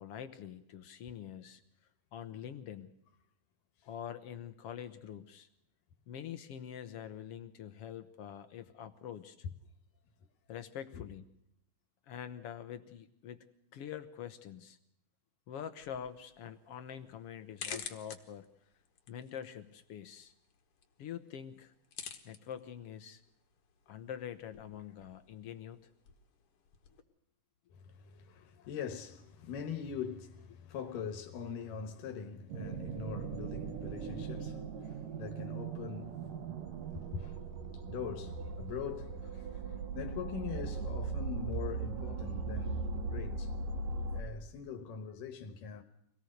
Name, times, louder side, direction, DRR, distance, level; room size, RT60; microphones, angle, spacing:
voice 1, 0.0-1.6 2.1-2.9 3.8-5.5 6.1-9.4 10.5-11.2 12.1-13.4 13.7-14.8 15.5-18.5 19.1-20.3 21.0-21.7 22.2-23.2 23.9-25.9, left 9 dB, 70° left, 1.5 m, -45 dB
sound 1, 15.8-27.0, left 7 dB, 50° left, 2.2 m, -51 dB
voice 2, 27.7-36.2 36.7-37.4 37.9-43.5 44.1-45.8, left 7 dB, 85° left, 2.9 m, -43 dB
sound 2, 32.5-44.2, right 4 dB, 85° right, 3.4 m, -39 dB
25.0 x 18.0 x 6.6 m
omnidirectional pair, 3.7 m